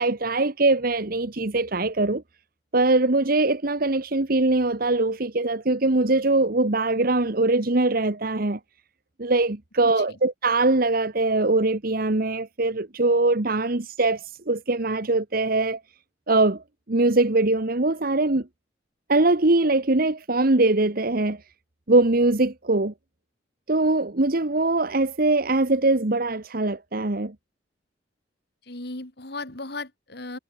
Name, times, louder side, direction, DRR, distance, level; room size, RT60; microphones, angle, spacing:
voice 1, 0.0-2.2 2.7-8.6 9.2-15.8 16.3-18.5 19.1-21.4 21.9-22.9 23.7-27.3, right 2 dB, 55° right, 1.4 m, -22 dB
voice 2, 9.8-10.2 28.7-30.4, left 2 dB, 65° left, 3.5 m, -36 dB
head